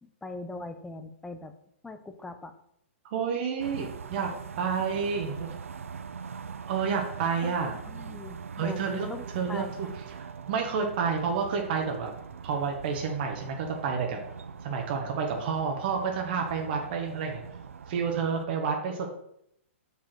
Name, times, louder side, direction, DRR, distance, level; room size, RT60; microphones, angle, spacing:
voice 1, 0.0-1.5 1.8-2.5 7.4-7.5 7.9-9.9, left 2 dB, 5° left, 9 dB, 0.6 m, -41 dB
voice 2, 3.0-4.3 4.6-5.5 6.7-7.8 8.6-9.1 9.3-12.1 12.4-14.2 14.6-17.4 17.9-19.1, right 6 dB, 50° right, 2 dB, 1.2 m, -30 dB
sound 1, 3.6-18.4, right 6 dB, 85° right, 0.5 m, -42 dB
6.8 x 4.9 x 4.6 m, 0.74 s
hypercardioid pair, 130°, 7 cm